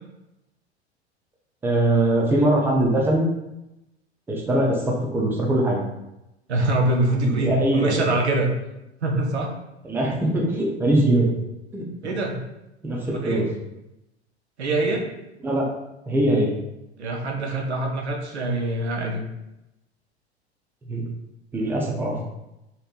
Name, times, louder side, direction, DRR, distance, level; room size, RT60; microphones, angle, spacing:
voice 1, 1.6-3.2 4.3-5.8 7.2-8.0 9.9-11.3 11.7-12.1 12.8-13.4 15.4-15.6 16.1-16.5 20.9-21.0 21.5-22.2, right 1 dB, 5° right, -2 dB, 0.5 m, -22 dB
voice 2, 6.5-8.5 9.0-9.5 12.0-12.4 13.0-13.5 14.6-15.0 17.0-19.2, right 2 dB, 75° right, 1 dB, 0.6 m, -24 dB
3.2 x 2.8 x 2.4 m, 0.91 s
figure-of-eight pair, 80°, 33 cm